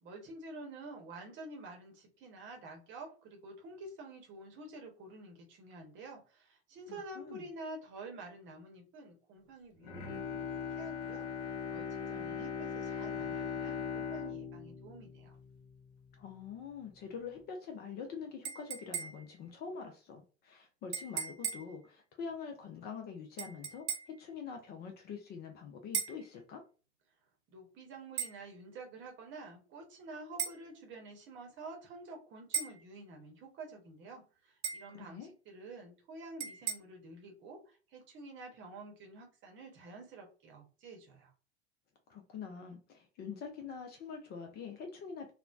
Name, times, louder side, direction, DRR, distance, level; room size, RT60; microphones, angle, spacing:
voice 1, 0.0-10.4 10.8-11.3 11.7-15.3 27.5-41.3, right 2 dB, 35° right, 2 dB, 0.9 m, -49 dB
voice 2, 6.9-7.4 16.2-26.6 34.9-35.3 42.1-45.3, left 6 dB, 30° left, 5 dB, 0.5 m, -45 dB
Bowed string instrument, 9.8-16.0 16.4-16.5, left 6 dB, 55° left, 0.9 m, -40 dB
sound 1, 18.4-19.4 20.9-21.8 23.4-24.2 25.9-26.3 28.2-28.4 30.4-30.6 32.5-32.8 34.6-34.9 36.4-36.7, right 8 dB, 75° right, 0.6 m, -37 dB
3.0 x 2.0 x 2.4 m, 0.36 s
figure-of-eight pair, 75°, 34 cm